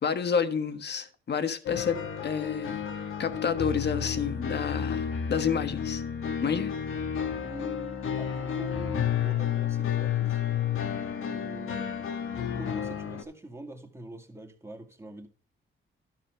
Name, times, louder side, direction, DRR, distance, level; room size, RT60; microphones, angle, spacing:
voice 1, 0.0-2.8 3.2-6.0 6.4-6.7, left 6 dB, 55° left, 1.4 m, -29 dB
sound 1, 1.7-13.2, left 8 dB, 80° left, 1.6 m, -31 dB
voice 2, 7.4-10.4 11.2-12.1 12.5-15.3, right 2 dB, 10° right, 2.2 m, -44 dB
12.5 x 6.0 x 4.4 m
cardioid pair, 95°, 21 cm